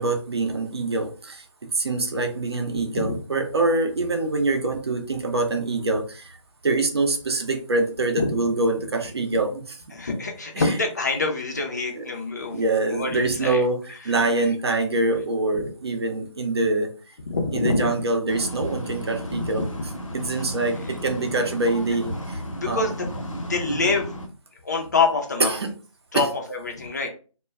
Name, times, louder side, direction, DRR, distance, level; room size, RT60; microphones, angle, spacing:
voice 1, 0.0-1.4 1.7-6.4 6.6-9.8 10.6-10.7 11.9-12.0 12.5-16.9 17.5-19.6 20.1-22.8 23.8-23.9 25.4-25.7 26.1-26.2, right 2 dB, 50° right, 4 dB, 0.6 m, -25 dB
voice 2, 2.7-3.2 8.2-8.4 9.9-12.6 12.9-13.6 14.1-14.5 17.3-17.9 19.3-19.4 20.8-20.9 22.6-23.1 23.5-24.1 24.6-25.6 26.1-27.1, left 3 dB, 30° left, 2 dB, 0.5 m, -26 dB
sound 1, 18.3-24.3, equal, 75° left, 0.8 m, -33 dB
2.2 x 2.1 x 3.4 m, 0.36 s
figure-of-eight pair, 155°, 17 cm